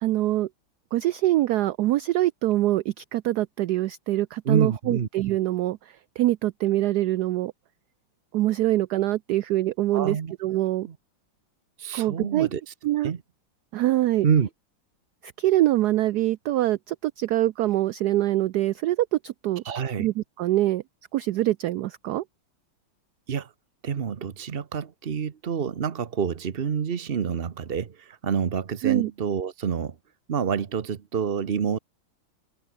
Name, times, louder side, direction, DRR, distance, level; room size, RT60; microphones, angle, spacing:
voice 1, 0.0-0.5 0.9-7.5 8.3-10.9 11.9-12.5 12.8-13.1 13.7-14.3 15.2-19.6 20.0-20.8 21.1-22.2 28.8-29.1, right 15 dB, 75° right, 0.9 m, -24 dB
voice 2, 4.4-5.1 9.9-10.3 10.8-10.9 11.8-12.7 13.0-13.2 14.2-14.5 19.6-20.1 23.3-23.5 23.8-30.0 30.3-31.8, right 7 dB, 45° right, 0.8 m, -27 dB
omnidirectional pair, 2.2 m